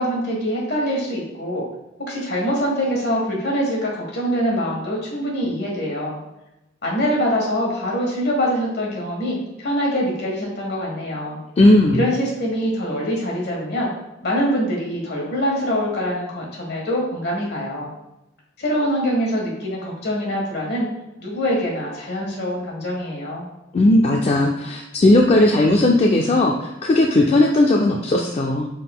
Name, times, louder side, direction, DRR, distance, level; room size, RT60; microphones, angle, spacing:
voice 1, 0.0-1.6 2.0-6.2 6.8-11.4 11.9-13.9 14.2-17.9 18.6-20.9 21.2-23.5, equal, 60° left, -2 dB, 1.4 m, -24 dB
voice 2, 11.6-12.0 23.7-28.7, left 1 dB, 35° left, 0 dB, 0.3 m, -16 dB
5.7 x 3.6 x 2.2 m, 0.92 s
head